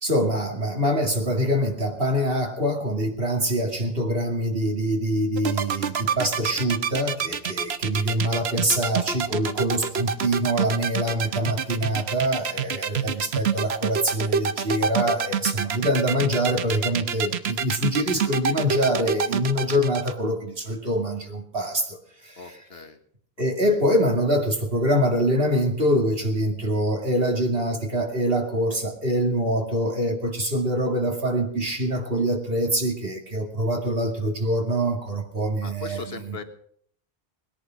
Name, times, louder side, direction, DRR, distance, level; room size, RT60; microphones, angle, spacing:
voice 1, 0.0-22.6 23.4-36.4, equal, 65° right, 2 dB, 2.8 m, -24 dB
sound 1, 5.4-20.1, right 7 dB, 85° right, 1.2 m, -26 dB
voice 2, 22.4-23.0 35.6-36.4, left 4 dB, 75° left, 8 dB, 1.8 m, -38 dB
19.5 x 10.5 x 6.2 m, 0.62 s
omnidirectional pair, 1.0 m